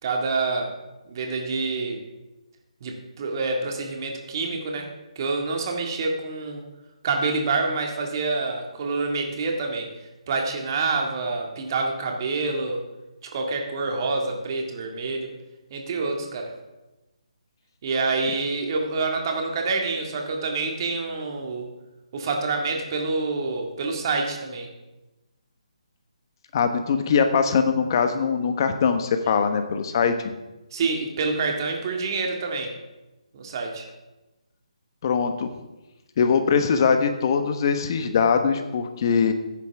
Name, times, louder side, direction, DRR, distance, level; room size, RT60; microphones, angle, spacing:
voice 1, 0.0-0.7 1.1-2.0 2.8-4.9 5.2-6.6 7.0-9.9 10.3-12.8 13.3-15.3 15.7-16.5 17.8-21.7 22.1-24.7 30.7-32.7 33.3-33.8, right 3 dB, 40° right, 2 dB, 2.1 m, -27 dB
voice 2, 26.5-30.3 35.0-35.5 36.2-39.3, left 6 dB, 40° left, 8 dB, 1.2 m, -22 dB
15.0 x 9.8 x 3.6 m, 1.1 s
figure-of-eight pair, 155°, 4 cm